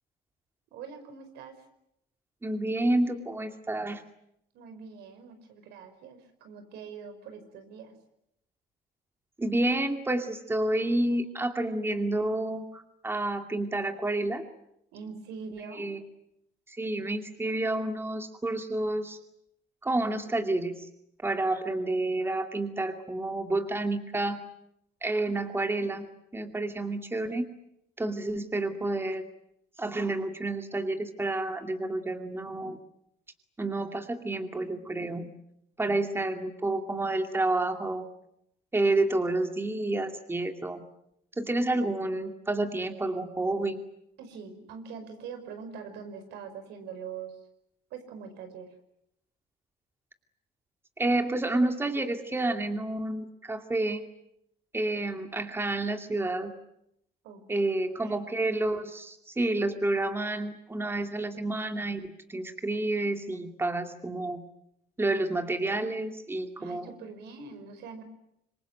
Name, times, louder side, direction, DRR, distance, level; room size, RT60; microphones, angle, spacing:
voice 1, 0.7-1.6 4.5-7.9 14.9-15.9 44.2-47.4 47.9-48.7 57.2-57.4 58.0-58.2 66.6-68.0, right 6 dB, 85° right, 8 dB, 5.4 m, -43 dB
voice 2, 2.4-4.0 9.4-14.4 15.7-16.0 16.7-19.2 19.8-20.9 21.2-24.4 25.0-27.5 28.0-29.2 29.8-32.8 33.6-35.3 35.8-38.0 38.7-40.8 41.4-43.8 51.0-54.0 54.7-56.5 57.5-64.4 65.0-66.9, right 2 dB, 15° right, 5 dB, 2.5 m, -29 dB
27.0 x 22.5 x 9.1 m, 0.79 s
cardioid pair, 110°, 17 cm